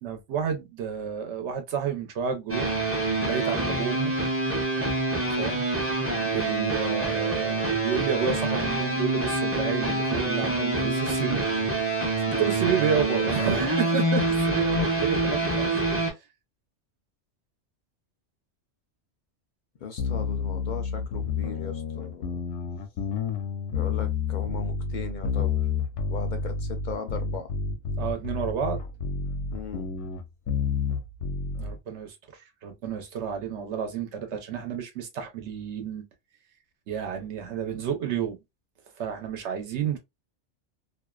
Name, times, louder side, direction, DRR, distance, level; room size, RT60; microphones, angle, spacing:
voice 1, 0.0-2.7 3.2-4.1 5.3-5.7 6.2-11.5 12.4-15.7 28.0-28.8 31.6-32.1 32.6-36.0 36.9-38.4 39.0-40.0, right 7 dB, 80° right, 1.0 m, -30 dB
sound 1, 2.5-16.1, right 2 dB, 15° right, 0.5 m, -26 dB
voice 2, 19.8-22.4 23.7-25.5 26.1-27.5 29.5-29.9, left 6 dB, 55° left, 0.6 m, -38 dB
sound 2, 20.0-31.8, left 5 dB, 85° left, 0.9 m, -30 dB
2.6 x 2.1 x 2.2 m
omnidirectional pair, 1.2 m